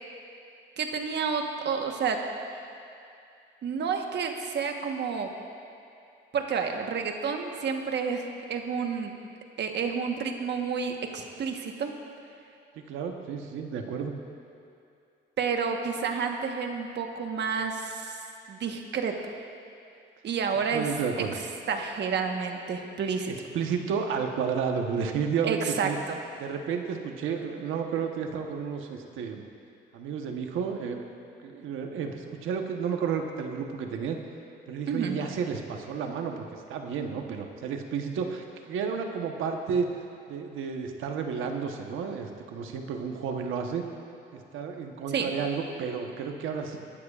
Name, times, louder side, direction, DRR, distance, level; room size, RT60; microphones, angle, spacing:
voice 1, 0.8-2.2 3.6-5.3 6.3-9.2 9.6-11.9 15.4-18.2 18.5-19.1 20.2-20.9 21.7-23.3 25.4-26.2 34.9-35.2 45.1-45.3, right 6 dB, 60° right, 3 dB, 1.3 m, -30 dB
voice 2, 12.8-14.1 20.7-21.3 23.3-26.0 26.4-29.4 29.9-31.0 31.4-34.2 34.7-39.9 40.3-43.8 44.3-46.8, right 6 dB, 85° right, 4 dB, 1.1 m, -32 dB
23.5 x 12.0 x 2.5 m, 2.5 s
cardioid pair, 90°, 20 cm